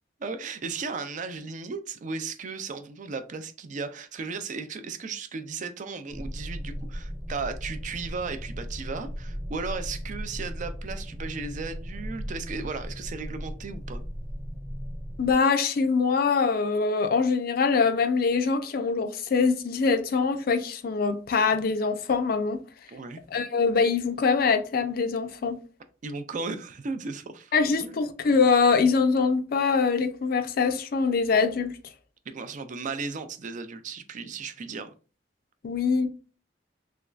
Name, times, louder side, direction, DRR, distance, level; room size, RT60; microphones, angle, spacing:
voice 1, 0.2-14.0 22.9-23.2 26.0-27.5 27.8-28.0 32.3-34.9, right 4 dB, 45° right, 0.4 m, -35 dB
sound 1, 6.1-15.3, equal, 20° right, 1.0 m, -36 dB
voice 2, 15.2-22.6 23.3-25.6 27.5-31.8 35.6-36.1, left 5 dB, 55° left, 0.4 m, -23 dB
3.4 x 3.0 x 2.4 m
head